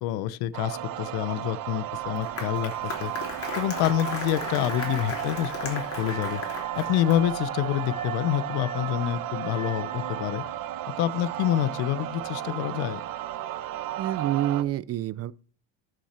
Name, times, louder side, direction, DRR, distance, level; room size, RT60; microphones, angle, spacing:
voice 1, 0.0-3.1 3.5-6.4 6.8-10.4 11.0-13.0, left 13 dB, 75° left, 0.8 m, -27 dB
sound 1, 0.5-14.6, right 12 dB, 60° right, 1.2 m, -34 dB
Applause, 1.9-7.4, left 4 dB, 35° left, 3.2 m, -37 dB
Wind instrument woodwind instrument, 4.2-10.6, right 4 dB, 20° right, 2.5 m, -43 dB
voice 2, 14.0-15.3, right 13 dB, 40° right, 0.5 m, -27 dB
13.0 x 6.4 x 4.3 m
cardioid pair, 135°, 38 cm